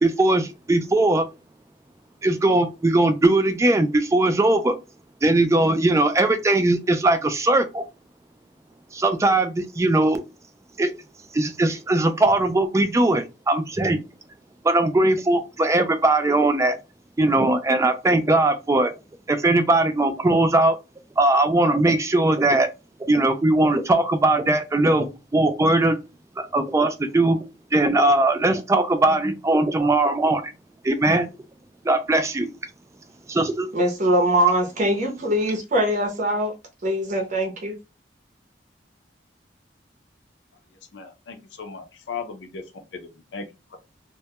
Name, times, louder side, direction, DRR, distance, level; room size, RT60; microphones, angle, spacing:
voice 1, 0.0-1.3 2.2-4.8 5.2-7.8 8.9-10.2 10.8-10.9 11.3-14.0 14.6-16.8 17.2-18.9 19.3-20.8 21.2-22.7 23.0-26.0 26.4-27.4 27.7-30.5 30.8-31.3 31.8-32.5 33.3-33.7, right 2 dB, 15° right, 0.3 m, -20 dB
voice 2, 33.7-36.5 36.8-37.8, right 1 dB, 45° right, 0.7 m, -22 dB
voice 3, 40.9-42.7 42.9-43.8, left 5 dB, 70° left, 0.5 m, -37 dB
2.1 x 2.1 x 2.8 m
head